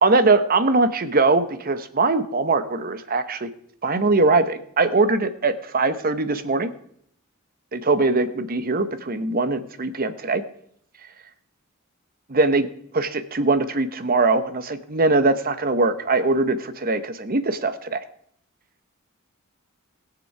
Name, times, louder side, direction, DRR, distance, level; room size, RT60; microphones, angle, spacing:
voice 1, 0.0-3.5 3.8-6.7 7.7-10.4 12.3-12.7 12.9-18.0, right 3 dB, 45° right, 11 dB, 0.9 m, -21 dB
20.5 x 6.9 x 4.8 m, 0.67 s
head